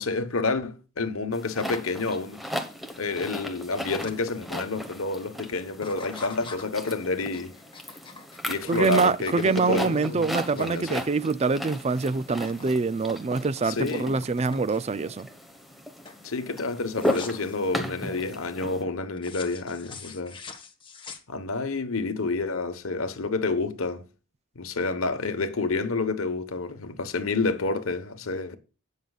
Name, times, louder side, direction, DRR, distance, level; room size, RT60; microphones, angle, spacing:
voice 1, 0.0-2.4 3.0-7.5 8.4-11.0 13.6-14.2 16.2-20.4 21.3-24.0 24.5-28.6, left 3 dB, 75° left, 1.2 m, -29 dB
sound 1, 1.3-18.8, equal, ahead, 1.2 m, -36 dB
sound 2, 4.0-4.2 4.7-5.1 5.7-11.8 12.0-12.8 13.1-15.0 15.5-15.8 16.0-16.3 16.9-17.6 19.2-21.7, left 4 dB, 25° left, 1.4 m, -45 dB
voice 2, 8.7-15.3, right 4 dB, 30° right, 0.4 m, -25 dB
18.0 x 6.6 x 2.4 m
head